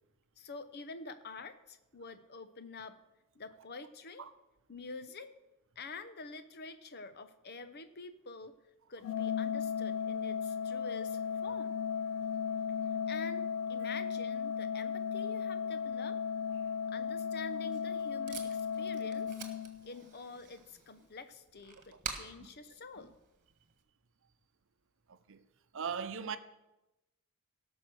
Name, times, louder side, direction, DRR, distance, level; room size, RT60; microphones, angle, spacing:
voice 1, 0.4-3.0 3.3-4.3 4.7-5.3 5.8-8.6 8.9-11.8 13.1-13.4 13.7-16.2 16.9-19.3 19.8-23.1, left 3 dB, 50° left, 0.9 m, -47 dB
Organ, 9.0-20.1, left 7 dB, 90° left, 0.3 m, -35 dB
Packing tape duct tape, 17.3-23.8, right 5 dB, 40° right, 1.5 m, -49 dB
voice 2, 25.1-25.4 25.7-26.4, right 6 dB, 60° right, 0.7 m, -38 dB
17.0 x 6.3 x 6.2 m
head